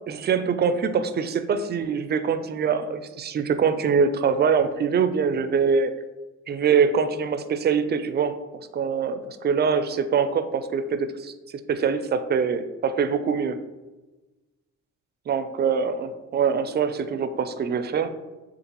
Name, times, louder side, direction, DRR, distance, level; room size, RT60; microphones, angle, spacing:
voice 1, 0.1-5.9 6.5-8.4 8.7-11.3 11.7-13.6 15.3-18.1, right 6 dB, 35° right, 11 dB, 0.4 m, -24 dB
6.5 x 2.5 x 3.0 m, 1.1 s
cardioid pair, 90°, 30 cm